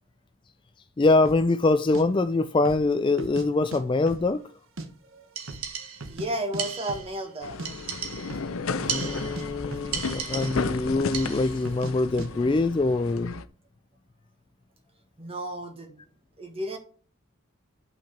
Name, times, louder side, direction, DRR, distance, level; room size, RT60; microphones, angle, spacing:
voice 1, 1.0-4.4 8.9-13.3, left 3 dB, 25° left, 0.3 m, -24 dB
sound 1, 1.2-1.5 1.9-2.0 2.6-2.9 3.2-3.8 4.1-4.9 5.1-5.2 5.5-6.3 6.5-6.6 6.9-7.1 7.4-7.7 8.2-8.5 8.8-9.1 9.4-10.2 10.4-10.5 11.1-11.4 11.7-11.9 12.2-12.3, right 2 dB, 70° right, 1.2 m, -38 dB
sound 2, 5.4-6.2 6.6-7.2 7.6-8.5 8.9-9.5 9.9-10.8 11.1-11.6, right 7 dB, 90° right, 1.6 m, -35 dB
voice 2, 6.1-7.6 15.2-16.0 16.4-16.8, right 1 dB, 25° right, 1.5 m, -33 dB
sound 3, 7.4-13.4, left 4 dB, 75° left, 0.7 m, -34 dB
9.6 x 5.8 x 4.3 m
head